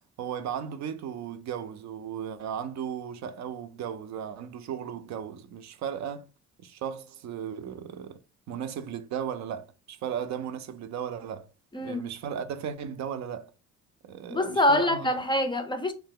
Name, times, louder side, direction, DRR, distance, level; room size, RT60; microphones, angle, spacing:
voice 1, 0.2-6.3 6.6-8.2 8.5-11.5 11.8-13.5 14.0-15.1, right 8 dB, 65° right, 0.5 m, -35 dB
voice 2, 11.7-12.1 14.3-15.9, left 1 dB, 15° left, 0.4 m, -25 dB
2.7 x 2.2 x 3.6 m
cardioid pair, 90°, 30 cm